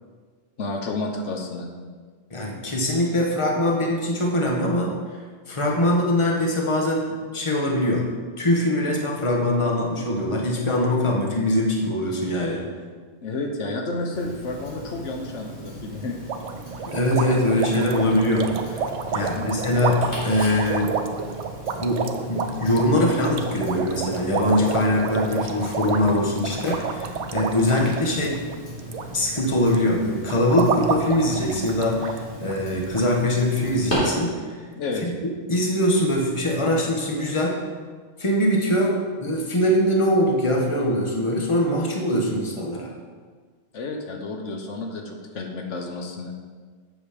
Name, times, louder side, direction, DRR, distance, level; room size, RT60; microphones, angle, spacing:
voice 1, 0.6-1.7 13.2-16.2 19.2-19.5 34.8-35.0 43.7-46.3, left 2 dB, 90° left, 3 dB, 1.3 m, -31 dB
voice 2, 2.3-4.9 5.5-7.0 7.3-8.0 8.4-12.6 16.9-18.8 19.1-21.0 21.8-22.0 22.3-28.4 29.1-34.6 35.0-35.1 35.5-37.6 38.2-42.9, left 1 dB, 25° left, -1 dB, 1.2 m, -22 dB
Tick-tock, 14.1-33.9, equal, 45° left, 2.9 m, -38 dB
sound 1, 16.3-29.0 29.3-29.7 30.3-32.2 32.5-32.6 32.9-33.0 33.6-33.7 33.9-34.1, right 5 dB, 85° right, 1.0 m, -29 dB
7.8 x 6.3 x 5.1 m, 1.5 s
omnidirectional pair, 1.2 m